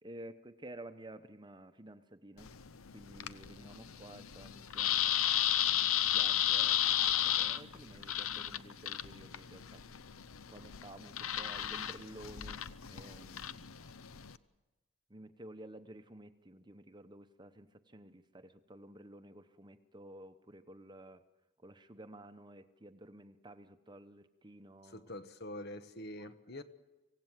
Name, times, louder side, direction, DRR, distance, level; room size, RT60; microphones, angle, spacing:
voice 1, 0.0-2.5 2.9-5.1 5.7-9.8 10.5-13.7 15.1-21.2 21.6-25.1 26.2-26.6, right 1 dB, 20° right, 10 dB, 0.9 m, -52 dB
sound 1, 2.4-14.4, left 11 dB, 80° left, 0.7 m, -34 dB
voice 2, 24.8-26.6, left 1 dB, 50° left, 10 dB, 1.2 m, -45 dB
25.5 x 17.0 x 7.5 m, 1.1 s
head